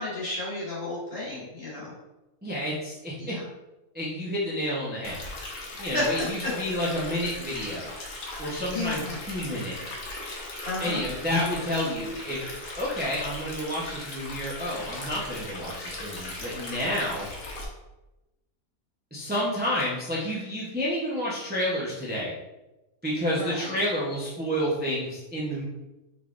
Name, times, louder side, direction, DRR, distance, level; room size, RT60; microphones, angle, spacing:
voice 1, 0.0-1.9 3.2-3.4 5.9-6.3 8.7-9.2 10.6-11.0 23.3-23.7, left 2 dB, 40° left, -8 dB, 1.9 m, -32 dB
voice 2, 2.4-3.3 3.9-5.2 5.8-7.9 8.4-9.8 10.8-12.4 12.8-17.3 19.1-22.3 23.0-25.6, equal, 10° right, -7 dB, 0.6 m, -30 dB
Stream, 5.0-17.6, left 2 dB, 65° left, 1.3 m, -38 dB
5.2 x 3.6 x 2.5 m, 1.0 s
omnidirectional pair, 1.5 m